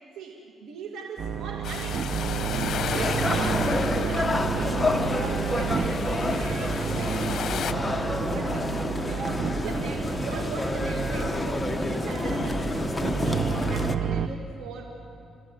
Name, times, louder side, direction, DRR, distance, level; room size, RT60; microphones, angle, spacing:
voice 1, 0.2-14.8, right 4 dB, 85° right, 1 dB, 2.4 m, -39 dB
sound 1, 1.2-14.3, right 7 dB, 60° right, 0.8 m, -31 dB
sound 2, 1.6-7.7, left 8 dB, 65° left, 1.0 m, -34 dB
sound 3, 2.9-13.9, left 2 dB, 15° left, 1.3 m, -29 dB
29.5 x 15.5 x 9.1 m, 2.5 s
cardioid pair, 90°, 0 cm